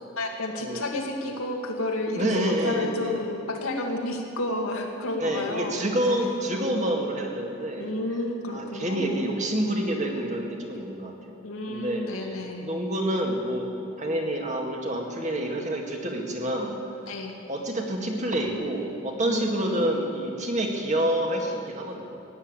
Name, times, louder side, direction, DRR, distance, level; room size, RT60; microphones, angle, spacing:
voice 1, 0.2-6.4 7.8-9.3 10.7-10.9 11.4-12.7 17.1-17.3 19.2-20.1, left 1 dB, 85° left, 1 dB, 2.1 m, -31 dB
voice 2, 2.2-3.2 5.2-7.9 8.5-11.4 11.7-12.3 12.6-13.7 14.0-16.8 17.5-22.2, right 1 dB, 35° right, 1 dB, 1.9 m, -28 dB
15.5 x 10.0 x 8.9 m, 2.5 s
head